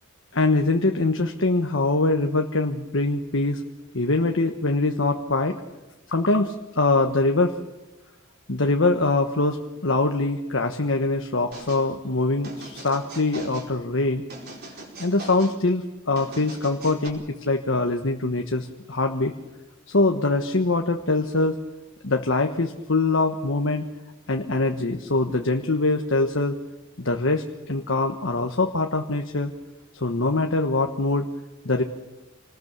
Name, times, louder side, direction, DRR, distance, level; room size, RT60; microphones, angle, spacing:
voice 1, 0.3-3.6 3.9-5.6 6.1-7.6 8.5-14.2 15.0-19.3 19.9-21.6 22.0-23.9 24.3-26.6 27.0-29.5 29.9-31.2 31.6-31.8, left 2 dB, 65° left, 4 dB, 1.3 m, -23 dB
sound 1, 11.5-11.9 12.4-13.7 14.3-15.6 16.2-17.1, right 2 dB, 50° right, 5.0 m, -40 dB
28.0 x 19.5 x 6.9 m, 1.1 s
head